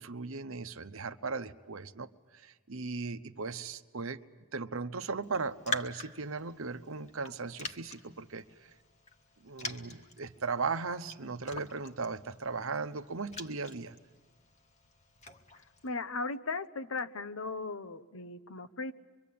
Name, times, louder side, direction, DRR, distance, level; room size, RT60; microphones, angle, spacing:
voice 1, 0.0-4.2 4.5-8.7 9.4-14.0, right 4 dB, 70° right, 10 dB, 0.9 m, -37 dB
Raindrop, 5.2-15.9, left 3 dB, 35° left, 1.5 m, -45 dB
voice 2, 15.8-18.9, left 3 dB, 75° left, 11 dB, 1.0 m, -37 dB
25.0 x 24.0 x 8.5 m, 1.3 s
head